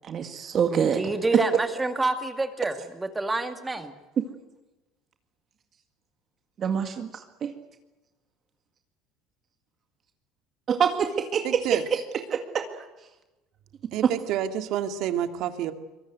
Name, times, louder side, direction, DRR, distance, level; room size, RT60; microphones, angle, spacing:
voice 1, 0.0-1.0 1.3-1.4 4.2-4.3 6.6-7.5 10.7-12.0 12.3-12.9 14.0-14.1, right 7 dB, 40° right, 6 dB, 2.0 m, -25 dB
voice 2, 0.7-4.0, right 2 dB, 15° right, 8 dB, 2.1 m, -28 dB
voice 3, 11.4-11.8 13.9-15.7, right 10 dB, 65° right, 8 dB, 2.2 m, -28 dB
23.5 x 21.0 x 9.4 m, 1.1 s
supercardioid pair, 100°, 0 cm